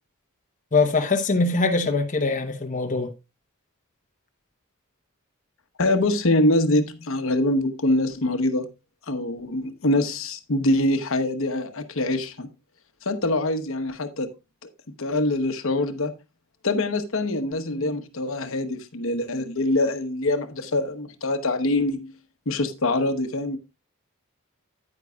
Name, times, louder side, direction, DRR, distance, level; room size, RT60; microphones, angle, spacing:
voice 1, 0.7-3.1, left 3 dB, 35° left, 0.9 m, -22 dB
voice 2, 5.8-8.7 9.1-12.5 13.0-14.3 14.6-14.7 15.0-16.1 16.6-22.1 22.5-23.6, left 2 dB, 65° left, 1.0 m, -24 dB
9.7 x 9.3 x 2.3 m
head